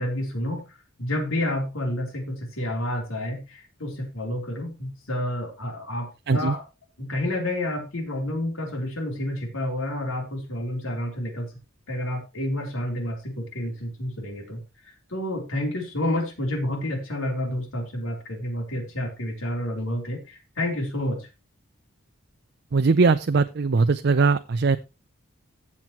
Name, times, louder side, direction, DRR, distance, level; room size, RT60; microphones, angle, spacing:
voice 1, 0.0-6.6 7.0-11.5 11.9-14.6 15.1-21.3, left 1 dB, 85° left, 2 dB, 3.5 m, -29 dB
voice 2, 22.7-24.8, right 4 dB, 55° right, 10 dB, 0.5 m, -20 dB
15.0 x 7.4 x 3.1 m, 0.27 s
head